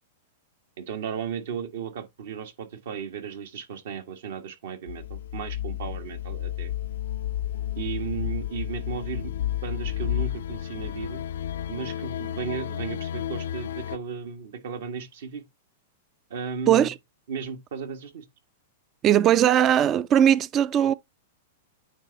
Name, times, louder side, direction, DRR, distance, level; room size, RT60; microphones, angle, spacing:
voice 1, 0.8-6.7 7.8-9.3 9.6-11.2 11.7-15.4 16.3-16.9 17.3-18.2, right 6 dB, 70° right, 1.3 m, -35 dB
sound 1, 4.9-14.0, left 11 dB, 75° left, 0.4 m, -31 dB
voice 2, 19.0-20.9, right 10 dB, 30° right, 0.3 m, -19 dB
8.9 x 3.4 x 3.9 m
hypercardioid pair, 120°, 0 cm